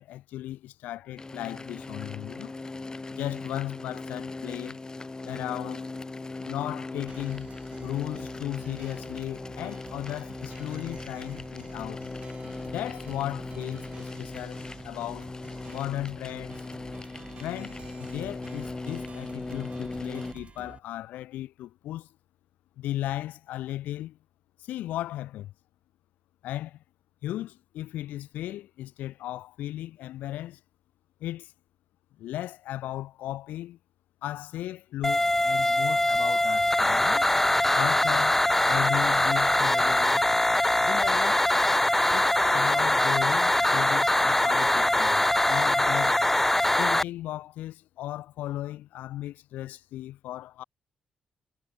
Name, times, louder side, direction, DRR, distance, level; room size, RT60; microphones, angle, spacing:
voice 1, 0.0-2.5 3.1-4.8 5.2-5.9 6.4-7.5 7.8-12.1 12.6-15.3 15.7-16.6 17.4-22.1 22.8-24.2 24.6-25.5 26.4-26.8 27.2-30.6 31.2-31.5 32.2-33.8 34.2-37.3 37.7-40.3 40.8-41.4 42.1-46.2 46.8-50.6, left 14 dB, 85° left, 0.5 m, -36 dB
sound 1, 1.2-20.3, left 3 dB, 25° left, 2.5 m, -39 dB
sound 2, 7.1-20.8, right 5 dB, 50° right, 6.1 m, -48 dB
sound 3, 35.0-47.0, left 1 dB, 10° left, 0.4 m, -23 dB
supercardioid pair, 55°, 3 cm